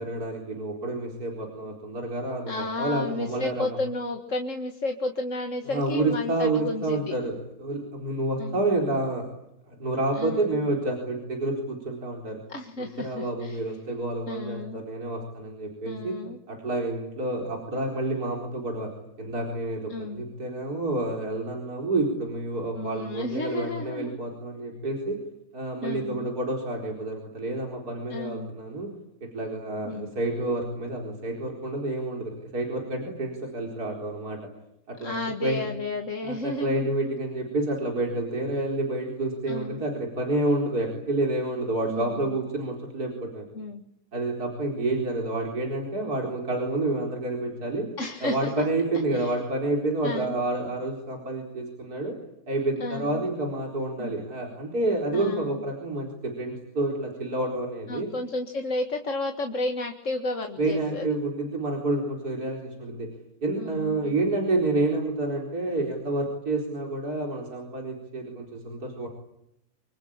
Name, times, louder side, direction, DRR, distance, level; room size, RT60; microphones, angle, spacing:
voice 1, 0.0-3.8 5.7-9.3 9.7-12.4 13.0-16.2 16.5-18.9 19.2-25.2 25.5-28.9 29.3-34.4 34.9-35.1 35.4-35.6 36.2-43.4 44.1-47.9 48.2-52.2 52.5-58.1 60.6-63.1 63.4-69.1, right 2 dB, 70° right, 0 dB, 4.8 m, -29 dB
voice 2, 2.5-7.1 8.4-8.6 10.2-10.6 12.5-13.6 14.3-14.8 15.9-16.4 19.9-20.2 22.8-24.2 25.8-26.3 28.1-28.5 29.8-30.1 35.0-36.9 39.5-39.9 41.9-42.3 43.5-43.8 48.0-48.7 49.1-49.4 50.0-50.4 52.8-53.2 54.0-54.1 55.1-55.6 57.9-61.1 63.6-64.2, left 2 dB, 50° left, 3 dB, 2.1 m, -32 dB
26.5 x 25.0 x 8.8 m, 0.79 s
omnidirectional pair, 1.7 m